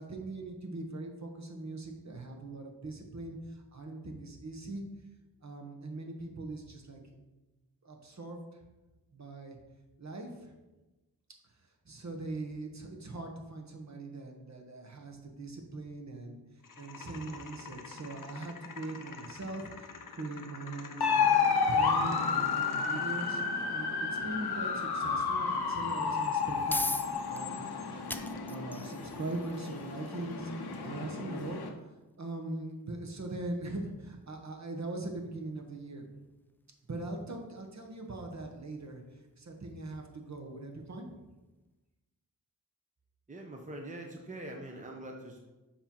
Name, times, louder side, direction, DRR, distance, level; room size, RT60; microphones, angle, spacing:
voice 1, 0.0-4.8 5.4-7.0 7.8-8.6 9.1-9.6 10.0-10.5 11.6-16.4 16.8-21.2 21.6-23.4 23.7-28.0 28.5-30.5 30.8-31.6 32.2-36.0 36.9-41.1, right 2 dB, 45° right, 2 dB, 1.2 m, -41 dB
sound 1, 16.6-23.6, left 5 dB, 55° left, 0.8 m, -47 dB
sound 2, 21.0-31.7, left 5 dB, 85° left, 0.8 m, -31 dB
sound 3, 26.7-41.1, left 1 dB, 5° left, 0.3 m, -45 dB
voice 2, 43.3-45.5, right 1 dB, 20° right, 1 dB, 0.8 m, -43 dB
7.0 x 3.0 x 5.4 m, 1.1 s
cardioid pair, 65°, 38 cm